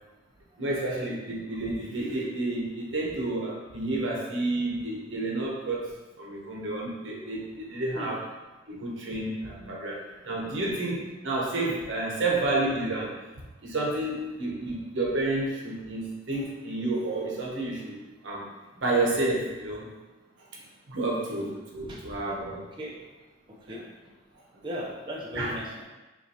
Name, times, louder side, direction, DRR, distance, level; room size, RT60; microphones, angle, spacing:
voice 1, 0.6-5.9 6.2-8.2 8.7-13.2 13.6-18.0 18.2-18.5 18.8-19.9 20.5-20.6 20.9-22.7 23.7-23.8 25.4-25.5, right 2 dB, 75° right, -3 dB, 0.9 m, -30 dB
voice 2, 23.5-23.8 24.6-25.8, equal, 25° right, -4 dB, 0.6 m, -37 dB
5.8 x 2.4 x 2.8 m, 1.2 s
head